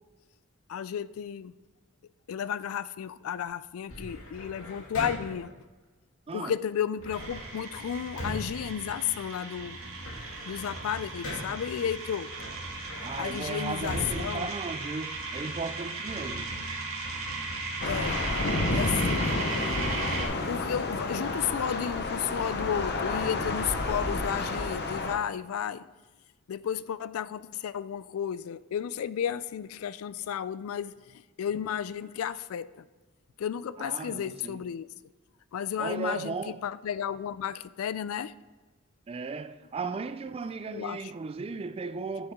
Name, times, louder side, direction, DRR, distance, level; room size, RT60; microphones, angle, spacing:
voice 1, 0.7-1.5 2.3-5.5 6.3-9.8 10.5-12.3 13.2-14.5 17.9-18.2 18.7-19.4 20.5-25.9 26.5-32.8 33.4-34.9 35.5-38.3 40.7-41.1, left 9 dB, 75° left, 0.3 m, -33 dB
sound 1, 3.9-5.5 7.0-9.4 9.8-11.7 12.3-15.3, equal, 90° left, 2.3 m, -40 dB
sound 2, 7.1-20.3, right 3 dB, 70° right, 1.8 m, -36 dB
voice 2, 13.0-16.5 33.8-34.6 35.8-36.6 39.1-42.3, right 4 dB, 25° right, 0.3 m, -36 dB
Thunder / Rain, 17.8-25.2, left 2 dB, 50° left, 0.8 m, -30 dB
10.0 x 6.8 x 3.6 m
head